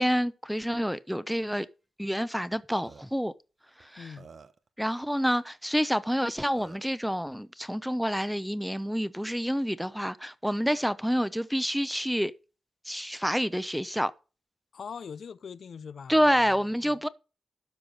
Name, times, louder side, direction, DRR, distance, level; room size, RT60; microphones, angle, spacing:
voice 1, 0.0-1.7 2.0-3.3 3.8-4.1 4.8-12.3 12.8-14.1 16.1-17.1, equal, ahead, 0.8 m, -28 dB
Burping eructation, 2.5-2.6 2.8-3.0 3.8-3.9 4.2-4.7 6.1-6.2 6.5-6.9, right 5 dB, 60° right, 1.0 m, -50 dB
voice 2, 4.0-4.3 14.7-16.2 16.8-17.0, left 6 dB, 70° left, 0.5 m, -42 dB
12.5 x 4.8 x 6.4 m
supercardioid pair, 45°, 0 cm